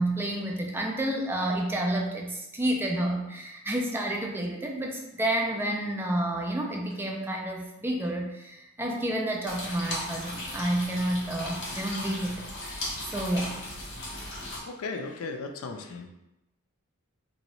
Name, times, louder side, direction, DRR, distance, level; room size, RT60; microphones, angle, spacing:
voice 1, 0.0-12.4 12.7-13.5, right 1 dB, 10° right, 0 dB, 0.4 m, -30 dB
sound 1, 9.5-14.6, left 1 dB, 55° left, 0.8 m, -37 dB
voice 2, 14.7-16.1, left 3 dB, 75° left, 5 dB, 0.4 m, -36 dB
3.0 x 2.7 x 2.9 m, 0.91 s
head